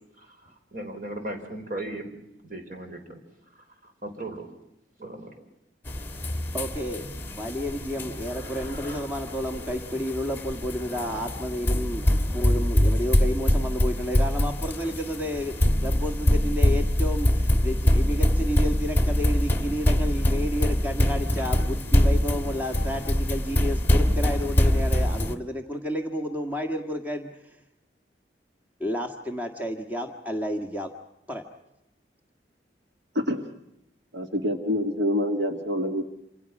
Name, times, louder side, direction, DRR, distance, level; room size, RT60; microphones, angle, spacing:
voice 1, 0.7-2.1 2.4-3.2 4.0-4.5 5.0-5.3, right 1 dB, 45° right, 4 dB, 4.7 m, -36 dB
sound 1, 5.9-25.4, left 1 dB, 10° left, 1.7 m, -24 dB
voice 2, 6.5-27.6 28.8-30.9 31.3-31.4, equal, 10° right, 4 dB, 1.7 m, -31 dB
voice 3, 33.1-33.4 34.1-36.1, left 1 dB, 75° right, 5 dB, 2.2 m, -26 dB
27.5 x 27.5 x 6.0 m, 0.84 s
head